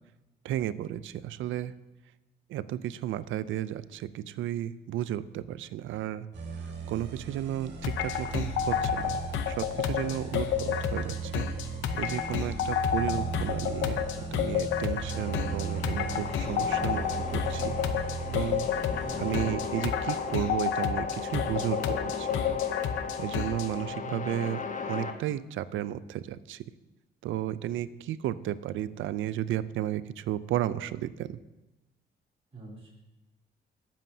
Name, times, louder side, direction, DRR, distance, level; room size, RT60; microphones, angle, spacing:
voice 1, 0.4-1.7 2.5-6.3 6.9-11.5 11.9-14.0 14.3-17.8 18.3-18.7 19.2-22.6 23.2-24.6 24.9-26.6 27.2-31.4, right 12 dB, 75° right, 16 dB, 0.5 m, -33 dB
sound 1, 6.3-19.5, right 4 dB, 60° right, 1.7 m, -37 dB
sound 2, 7.8-23.7, left 8 dB, 80° left, 0.7 m, -31 dB
voice 2, 9.7-10.0 19.0-19.3 23.9-24.3 32.5-32.9, right 4 dB, 30° right, -6 dB, 3.9 m, -45 dB
sound 3, 15.1-25.1, left 5 dB, 40° left, 1.1 m, -37 dB
19.5 x 7.4 x 2.8 m, 1.0 s
cardioid pair, 90°, 20 cm